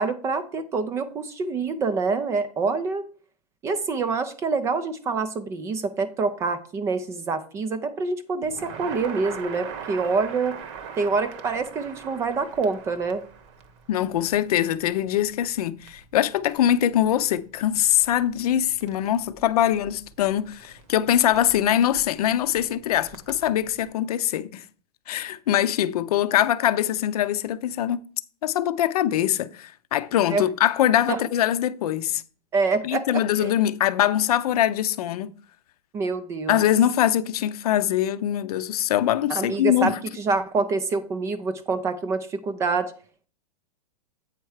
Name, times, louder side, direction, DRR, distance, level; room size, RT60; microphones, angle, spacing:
voice 1, 0.0-3.0 3.6-10.6 11.0-13.2 30.3-30.4 31.1-31.2 32.5-33.1 33.4-33.5 35.9-36.6 39.3-42.9, right 4 dB, 15° right, 0.3 m, -26 dB
Crackle, 8.4-23.9, right 7 dB, 45° right, 1.0 m, -43 dB
voice 2, 13.9-24.6 25.1-28.0 28.4-32.2 32.8-35.3 36.5-40.0, left 11 dB, 65° left, 0.6 m, -23 dB
8.1 x 4.4 x 4.8 m
hypercardioid pair, 150°, 21 cm